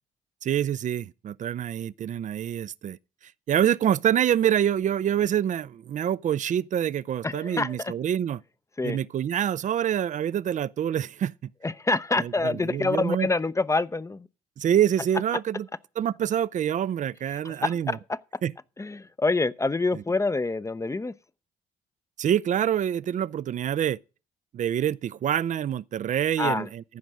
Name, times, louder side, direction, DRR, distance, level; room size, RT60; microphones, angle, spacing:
voice 1, 0.4-3.0 3.2-8.4 8.8-11.5 12.2-13.3 14.6-15.7 16.0-18.0 18.4-18.5 19.9-20.0 22.2-24.0 24.5-26.8, right 10 dB, 50° right, 0.5 m, -26 dB
voice 2, 7.2-7.9 8.8-9.0 11.6-14.3 17.4-18.2 18.8-21.1 26.4-26.7, left 3 dB, 20° left, 0.6 m, -26 dB
14.5 x 5.3 x 6.1 m
supercardioid pair, 60°, 17 cm